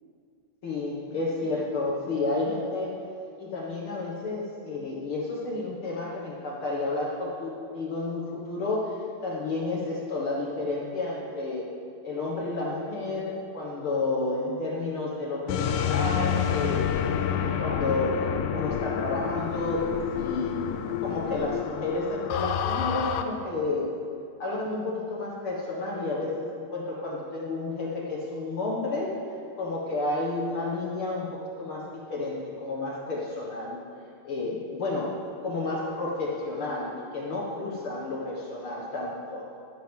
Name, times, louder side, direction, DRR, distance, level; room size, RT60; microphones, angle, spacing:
voice 1, 0.6-3.0 3.4-9.0 9.2-11.7 12.0-17.0 17.6-20.6 21.0-23.9 24.4-29.2 29.6-33.8 34.2-39.5, left 2 dB, 55° left, -4 dB, 1.6 m, -31 dB
sound 1, 15.5-23.2, left 8 dB, 85° left, 2.1 m, -28 dB
12.0 x 10.5 x 3.7 m, 2.4 s
omnidirectional pair, 3.8 m